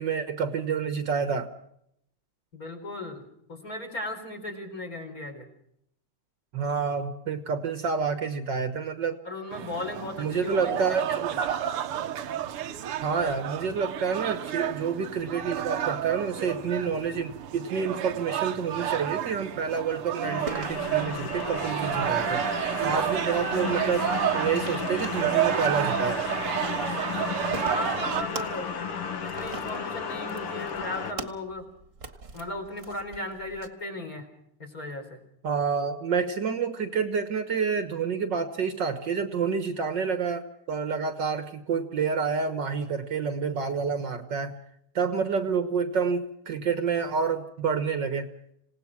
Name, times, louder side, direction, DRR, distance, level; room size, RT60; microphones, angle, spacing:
voice 1, 0.0-1.5 6.5-9.2 10.2-11.3 13.0-26.3 35.4-44.6 45.0-48.3, right 6 dB, 55° right, 9 dB, 1.8 m, -28 dB
voice 2, 2.5-3.2 3.5-5.5 9.2-11.4 27.6-28.8 29.2-31.7 32.3-34.3 34.6-35.2, left 2 dB, 40° left, 3 dB, 4.5 m, -36 dB
sound 1, 9.5-28.2, right 11 dB, 85° right, 2.0 m, -30 dB
sound 2, 20.2-31.1, left 6 dB, 85° left, 2.8 m, -34 dB
sound 3, 20.5-33.7, right 4 dB, 40° right, 1.8 m, -44 dB
27.5 x 18.0 x 6.0 m, 0.73 s
omnidirectional pair, 2.4 m